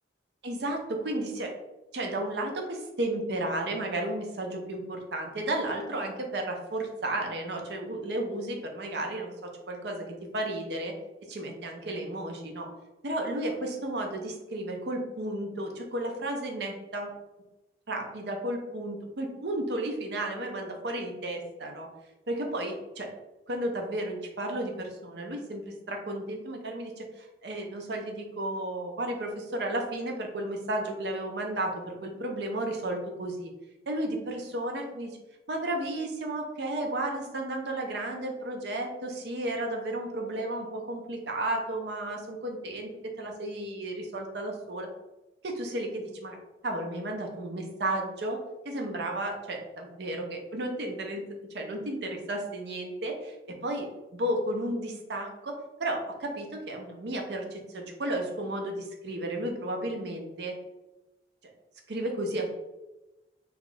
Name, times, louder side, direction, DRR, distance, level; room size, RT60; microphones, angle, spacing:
voice 1, 0.4-1.5 1.9-9.3 9.7-10.9 11.3-12.7 13.0-17.1 17.9-21.9 22.3-23.1 23.5-25.6 25.9-33.5 33.9-35.1 35.5-42.9 43.2-44.9 45.4-46.4 46.6-48.4 48.6-51.2 51.5-53.3 53.6-55.5 55.8-60.5 61.9-62.5, right 1 dB, 60° right, 2 dB, 0.6 m, -33 dB
3.0 x 2.4 x 3.7 m, 1.0 s
head